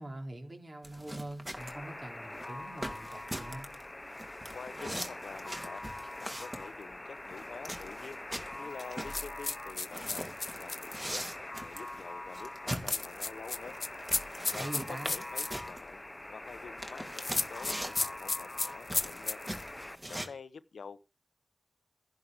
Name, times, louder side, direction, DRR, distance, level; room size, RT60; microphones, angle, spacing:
voice 1, 0.0-3.7 14.5-15.2, right 1 dB, 40° right, 3.5 m, -43 dB
sound 1, 0.8-20.3, equal, 10° right, 2.4 m, -42 dB
Alarm, 1.6-20.0, left 1 dB, 20° left, 0.8 m, -44 dB
voice 2, 4.5-5.8 6.2-8.2 8.6-11.3 11.6-13.8 14.5-16.0 16.3-19.4 20.1-21.0, left 5 dB, 80° left, 0.9 m, -47 dB
sound 2, 9.1-11.0 12.9-15.5 17.2-19.6, left 3 dB, 50° left, 0.6 m, -34 dB
14.5 x 11.0 x 5.1 m
cardioid pair, 60°, 0 cm